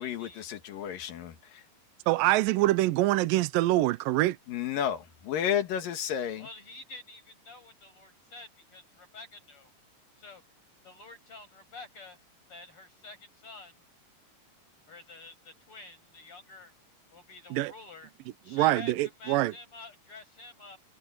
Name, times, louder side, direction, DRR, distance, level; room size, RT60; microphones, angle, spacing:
voice 1, 0.0-1.6 4.5-6.5, left 9 dB, 75° left, 3.3 m, -32 dB
voice 2, 2.1-4.4 17.5-17.7 18.5-19.5, right 17 dB, 90° right, 2.4 m, -25 dB
voice 3, 6.4-9.7 10.2-10.4 10.8-12.2 12.5-13.8 14.9-16.7 17.1-18.1 18.4-18.9 19.2-20.8, left 3 dB, 40° left, 8.7 m, -48 dB
omnidirectional pair, 4.0 m